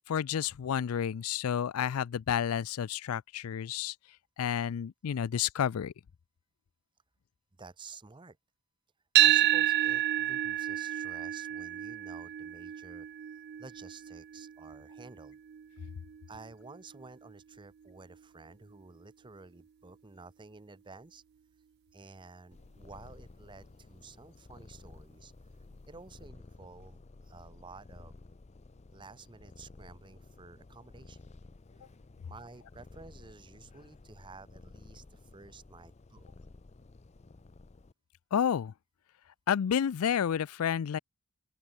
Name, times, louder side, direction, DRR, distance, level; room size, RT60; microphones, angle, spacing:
voice 1, 0.1-3.9 4.4-5.9 38.3-38.7 39.5-41.0, left 8 dB, 90° left, 0.4 m, -30 dB
voice 2, 7.6-8.4 9.2-15.4 16.3-21.2 21.9-25.3 25.9-28.1 28.9-31.3 32.2-36.3, right 4 dB, 20° right, 0.7 m, -52 dB
sound 1, 9.2-17.3, right 14 dB, 50° right, 0.3 m, -30 dB
Purr, 22.5-37.9, left 2 dB, 30° left, 0.5 m, -54 dB
open air
head